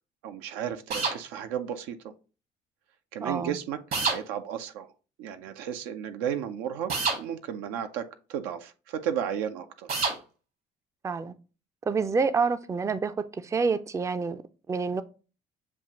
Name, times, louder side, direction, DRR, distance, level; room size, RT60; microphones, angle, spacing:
voice 1, 0.2-2.1 3.1-4.9 5.2-6.9 7.2-8.0 8.3-9.9, right 9 dB, 80° right, 0.5 m, -33 dB
sound 1, 0.9-1.2 3.9-4.2 6.9-7.2 9.9-10.2, right 4 dB, 60° right, 1.3 m, -27 dB
voice 2, 3.2-3.6 11.0-11.3 11.9-14.4 14.7-15.0, right 5 dB, 15° right, 0.4 m, -27 dB
7.1 x 2.4 x 2.8 m
supercardioid pair, 70°, 17 cm